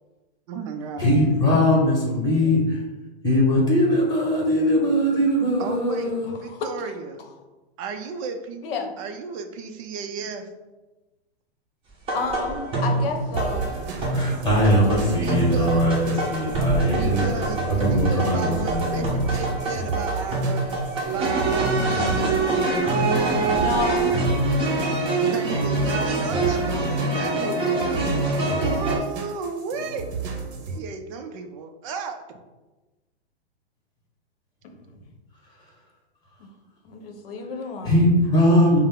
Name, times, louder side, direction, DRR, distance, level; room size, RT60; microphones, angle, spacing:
voice 1, 0.5-1.0 1.5-1.6 2.1-2.6 5.6-6.1 6.4-7.2 7.8-8.6 9.0-10.4 15.2-15.8 16.9-22.4 25.2-30.1 30.7-32.2, right 5 dB, 35° right, 6 dB, 0.4 m, -34 dB
voice 2, 1.0-2.8 3.2-6.3 14.1-19.1 25.2-25.3 37.8-38.8, equal, 10° left, -4 dB, 1.3 m, -21 dB
voice 3, 6.3-7.3 8.6-8.9 12.1-13.6 23.5-24.1 34.6-35.0 36.4-36.5 36.8-38.1, left 5 dB, 60° left, 4 dB, 0.8 m, -31 dB
sound 1, 12.1-29.0, right 2 dB, 15° right, 1.0 m, -25 dB
sound 2, 13.3-30.8, right 5 dB, 60° right, 0.8 m, -33 dB
5.2 x 2.0 x 3.6 m, 1.1 s
hypercardioid pair, 135°, 32 cm